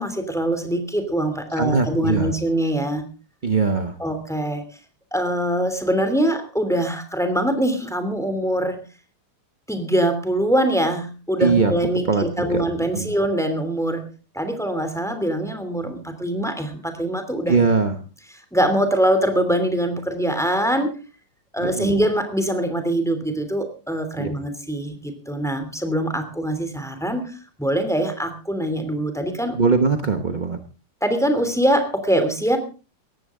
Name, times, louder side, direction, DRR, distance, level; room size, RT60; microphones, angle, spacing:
voice 1, 0.0-3.0 4.0-4.6 5.1-8.8 9.7-14.0 14.3-17.6 18.5-20.9 21.5-27.3 27.6-29.6 31.0-32.6, right 1 dB, ahead, 8 dB, 2.7 m, -23 dB
voice 2, 1.6-2.3 3.4-4.0 11.4-11.7 12.0-12.2 12.5-12.6 12.9-13.1 17.5-17.9 21.6-21.9 24.2-24.3 29.5-30.6, right 4 dB, 35° right, 7 dB, 0.7 m, -21 dB
18.0 x 15.0 x 3.7 m, 0.34 s
omnidirectional pair, 2.4 m